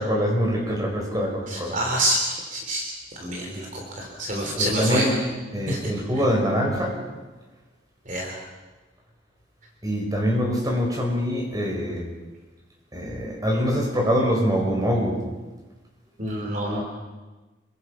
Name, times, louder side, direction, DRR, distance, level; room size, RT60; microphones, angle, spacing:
voice 1, 0.0-1.8 4.4-5.2 5.5-7.0 9.8-12.1 12.9-15.2, equal, 20° right, 0 dB, 5.0 m, -24 dB
voice 2, 1.5-2.8 3.2-5.1 5.7-5.8 8.1-8.3 16.2-16.8, right 1 dB, 40° right, 0 dB, 3.6 m, -27 dB
27.0 x 22.5 x 5.8 m, 1.2 s
head